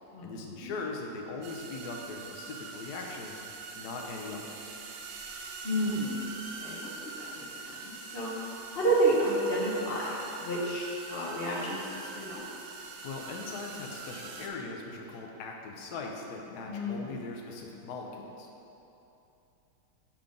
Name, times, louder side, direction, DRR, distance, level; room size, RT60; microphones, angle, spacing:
voice 1, 0.2-3.4 3.7-4.8 13.0-18.5, left 3 dB, 65° left, 0 dB, 1.1 m, -40 dB
sound 1, 1.4-14.5, right 4 dB, 75° right, 1.2 m, -43 dB
voice 2, 5.6-6.1 6.6-6.9 7.4-7.5 7.8-8.3 8.7-11.8 12.1-12.4 16.7-17.0, right 1 dB, 50° left, -6 dB, 0.7 m, -29 dB
5.9 x 3.8 x 5.0 m, 2.9 s
omnidirectional pair, 2.2 m